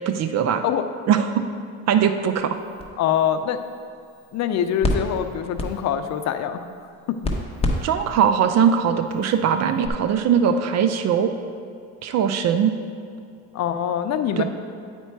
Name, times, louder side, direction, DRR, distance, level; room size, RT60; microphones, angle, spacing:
voice 1, 0.1-0.6 1.1-1.3 1.9-2.6 7.8-11.3 12.0-12.7 14.4-14.5, right 8 dB, 55° right, 8 dB, 0.5 m, -20 dB
sound 1, 2.3-9.9, left 2 dB, 20° left, 0.9 m, -32 dB
voice 2, 3.0-3.6 4.3-6.7 13.5-14.4, left 9 dB, 55° left, 9 dB, 0.6 m, -24 dB
9.2 x 4.5 x 4.6 m, 2.4 s
cardioid pair, 105°, 33 cm